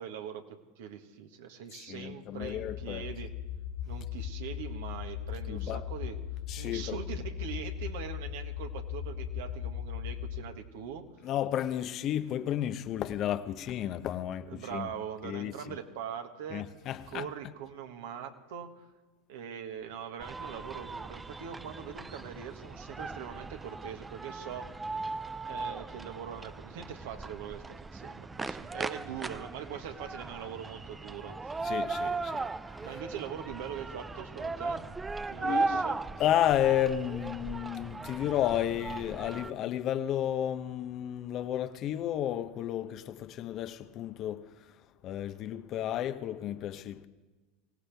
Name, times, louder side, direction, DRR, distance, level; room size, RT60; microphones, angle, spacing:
voice 1, 0.0-3.3 3.9-6.2 6.6-11.1 14.5-16.7 17.1-18.9 19.3-24.7 25.4-31.6 32.8-34.9 35.3-36.0, right 8 dB, 70° right, 1.6 m, -42 dB
voice 2, 1.7-3.1 5.5-5.9 6.5-7.0 11.2-14.9 15.2-15.8 16.5-17.3 31.6-33.0 35.4-47.1, left 11 dB, 45° left, 0.9 m, -32 dB
sound 1, 2.4-10.4, left 10 dB, 65° left, 2.1 m, -38 dB
sound 2, 20.2-39.5, right 3 dB, 15° right, 0.5 m, -38 dB
24.0 x 17.0 x 3.5 m
hypercardioid pair, 90°, 0 cm